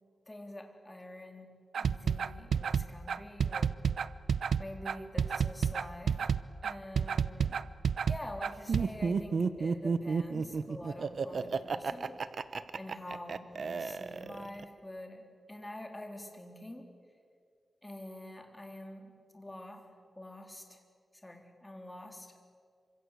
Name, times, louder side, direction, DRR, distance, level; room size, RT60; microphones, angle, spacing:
voice 1, 0.3-3.8 4.6-6.3 6.6-7.6 8.1-12.1 12.8-16.8 17.8-19.9 20.2-20.8 21.2-22.3, left 1 dB, 15° left, 3 dB, 3.7 m, -46 dB
sound 1, 1.7-8.8, right 7 dB, 90° right, 0.7 m, -30 dB
Laughter, 8.7-14.6, right 5 dB, 60° right, 1.1 m, -32 dB
27.0 x 25.0 x 8.4 m, 2.2 s
wide cardioid pair, 135°, 0 cm